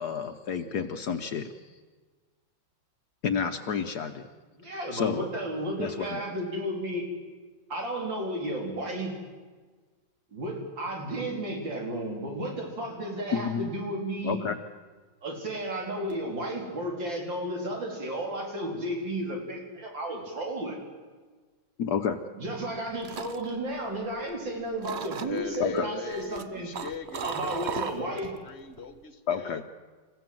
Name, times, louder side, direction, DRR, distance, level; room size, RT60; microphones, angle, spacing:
voice 1, 0.0-1.5 3.2-4.3 4.9-5.2 5.8-6.2 13.3-13.7 14.2-14.6 21.8-22.2 25.6-25.9 29.3-29.6, left 6 dB, 65° left, 7 dB, 1.4 m, -30 dB
voice 2, 4.5-7.1 7.7-9.2 10.3-14.4 15.2-20.8 22.4-26.7 27.2-28.3, right 1 dB, 85° right, 0 dB, 4.6 m, -33 dB
sound 1, 22.6-24.5 24.8-25.6 26.1-28.4 28.7-29.0, right 7 dB, 50° right, 0.8 m, -37 dB
voice 3, 25.2-29.7, left 5 dB, 35° left, 10 dB, 1.6 m, -40 dB
29.5 x 15.5 x 7.8 m, 1.4 s
omnidirectional pair, 2.0 m